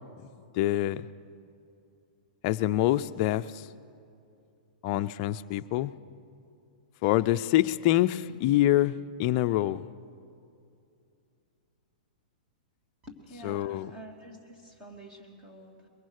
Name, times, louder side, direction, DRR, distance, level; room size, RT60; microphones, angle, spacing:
voice 1, 0.5-1.1 2.4-3.7 4.8-5.9 7.0-9.8 13.4-13.9, left 14 dB, 35° left, 0.5 m, -26 dB
voice 2, 13.0-15.9, equal, 15° right, 3.0 m, -48 dB
23.0 x 21.5 x 6.6 m
hypercardioid pair, 155°, 5 cm